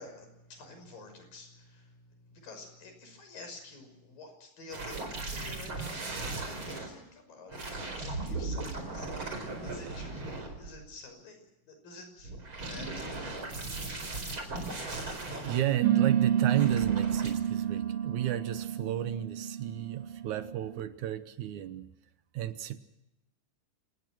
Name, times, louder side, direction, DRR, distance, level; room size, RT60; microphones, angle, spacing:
voice 1, 0.0-13.5, left 3 dB, 85° left, 6 dB, 7.5 m, -50 dB
sound 1, 4.7-6.9 7.5-10.9 12.2-15.6 16.5-17.3, right 3 dB, 35° right, 5.2 m, -37 dB
voice 2, 15.4-21.9 22.3-22.8, right 12 dB, 70° right, 12 dB, 2.2 m, -33 dB
sound 2, 15.8-20.8, right 9 dB, 85° right, 2.8 m, -29 dB
28.5 x 19.5 x 6.2 m, 0.90 s
omnidirectional pair, 3.9 m